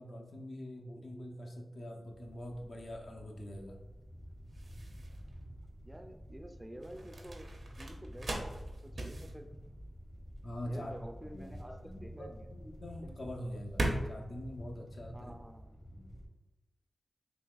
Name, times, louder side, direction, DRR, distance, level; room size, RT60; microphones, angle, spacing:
voice 1, 0.0-3.8 10.4-11.0 11.3-15.4 15.9-16.2, left 1 dB, 60° left, 0 dB, 0.6 m, -44 dB
sound 1, 1.8-15.6, right 1 dB, 60° right, 0.6 m, -42 dB
sound 2, 2.1-16.3, equal, 30° left, 0.8 m, -49 dB
voice 2, 5.9-7.5 7.8-9.5 10.6-12.5 12.9-13.5 15.1-15.8, right 1 dB, 15° right, 5 dB, 0.4 m, -50 dB
4.0 x 2.8 x 2.4 m, 1.1 s
cardioid pair, 45°, 0 cm